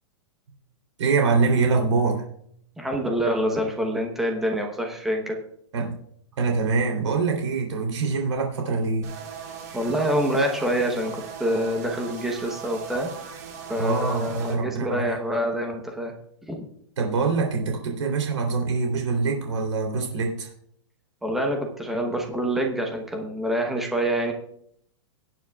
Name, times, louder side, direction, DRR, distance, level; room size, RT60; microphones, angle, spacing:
voice 1, 1.0-2.2 5.7-6.0 6.4-9.1 13.8-15.2 17.0-20.5, right 4 dB, 75° right, 1 dB, 3.2 m, -24 dB
voice 2, 2.8-5.4 9.7-13.1 13.7-16.1 16.5-16.6 21.2-24.3, equal, ahead, 2 dB, 0.9 m, -26 dB
sound 1, 9.0-14.6, right 7 dB, 30° right, 1.8 m, -39 dB
18.0 x 9.3 x 2.3 m, 0.66 s
hypercardioid pair, 180°, 15 cm